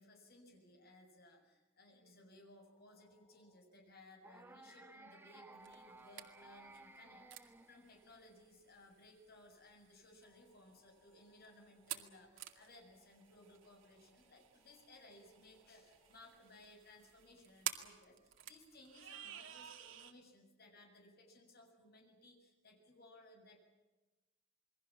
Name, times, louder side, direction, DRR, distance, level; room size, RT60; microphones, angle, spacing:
voice 1, 0.0-23.6, left 2 dB, 55° left, 3 dB, 7.4 m, -61 dB
sound 1, 2.7-3.6 4.2-4.3 10.2-16.5, left 1 dB, 20° left, 6.9 m, -75 dB
sound 2, 4.2-8.4, right 2 dB, 10° right, 1.3 m, -58 dB
sound 3, 5.6-20.1, right 11 dB, 85° right, 2.2 m, -51 dB
28.5 x 22.0 x 7.4 m, 1.1 s
head